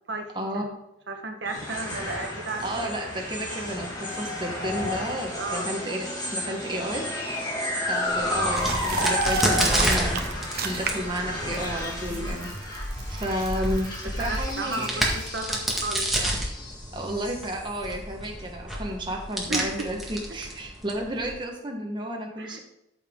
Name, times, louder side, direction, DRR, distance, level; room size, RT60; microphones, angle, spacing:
voice 1, 0.1-0.8 1.1-2.9 5.3-5.7 9.3-9.9 12.1-12.4 14.0-16.4 19.5-19.9 22.4-22.6, right 2 dB, 85° right, 4 dB, 1.3 m, -34 dB
sound 1, 1.5-17.9, left 1 dB, 20° left, 2.1 m, -32 dB
voice 2, 2.6-7.0 7.9-10.2 10.6-12.7 13.1-13.9 14.2-15.0 16.9-22.6, right 1 dB, 25° right, 1 dB, 1.4 m, -32 dB
Crack, 8.1-21.3, right 1 dB, ahead, 1.7 m, -30 dB
sound 2, 8.5-11.2 11.5-15.3, right 5 dB, 55° right, 1.0 m, -36 dB
13.5 x 5.8 x 3.8 m, 0.84 s
head